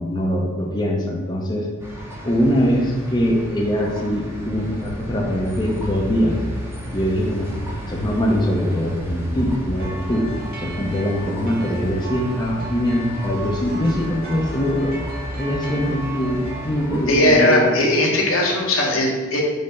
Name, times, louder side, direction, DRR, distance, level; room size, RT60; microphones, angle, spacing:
voice 1, 0.0-1.7 2.2-6.4 6.9-7.6 7.9-10.3 10.6-14.9 15.4-17.7, equal, 20° left, -2 dB, 0.7 m, -22 dB
sound 1, 1.8-17.1, equal, 10° right, 0.9 m, -32 dB
sound 2, 9.7-16.8, equal, 45° right, 1.0 m, -35 dB
voice 2, 17.1-19.4, left 1 dB, 75° left, -1 dB, 1.3 m, -18 dB
5.3 x 3.4 x 5.4 m, 1.5 s
head